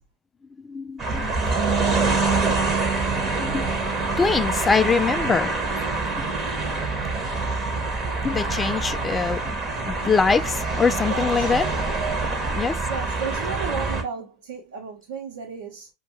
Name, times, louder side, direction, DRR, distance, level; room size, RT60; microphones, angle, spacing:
voice 1, 0.6-1.2 3.2-3.7 4.2-5.6 6.1-6.3 6.7-7.1 8.2-9.6 9.8-11.7 12.5-12.8, left 5 dB, 15° left, 0.4 m, -24 dB
sound 1, 1.0-14.0, right 3 dB, 20° right, 1.2 m, -25 dB
voice 2, 11.1-11.5 12.9-15.9, right 5 dB, 55° right, 1.1 m, -33 dB
5.3 x 2.4 x 3.0 m
figure-of-eight pair, 90°, 0 cm